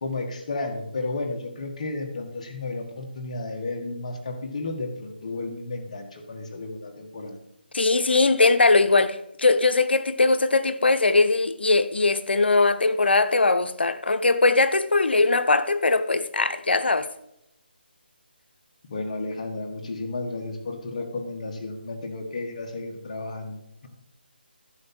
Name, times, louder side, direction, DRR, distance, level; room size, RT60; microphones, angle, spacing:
voice 1, 0.0-7.4 18.9-23.9, left 2 dB, 40° left, 1.7 m, -33 dB
voice 2, 7.7-17.1, left 3 dB, 80° left, 0.8 m, -20 dB
11.5 x 6.9 x 4.4 m
figure-of-eight pair, 165°, 6 cm